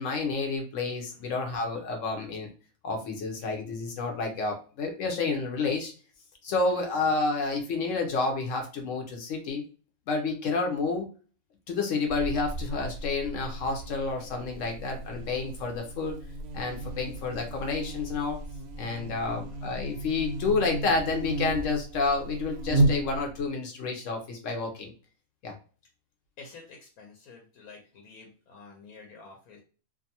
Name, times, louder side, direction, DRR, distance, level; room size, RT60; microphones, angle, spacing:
voice 1, 0.0-2.5 2.8-5.9 6.4-9.6 10.1-11.1 11.7-16.2 16.5-18.4 18.8-24.9 25.4-25.5, left 3 dB, 70° left, 3 dB, 0.9 m, -30 dB
Buzz, 12.1-23.5, right 2 dB, 65° right, 0.6 m, -33 dB
voice 2, 19.2-19.6 26.4-29.6, left 4 dB, 85° left, 0 dB, 1.1 m, -50 dB
2.5 x 2.3 x 2.7 m, 0.37 s
omnidirectional pair, 1.5 m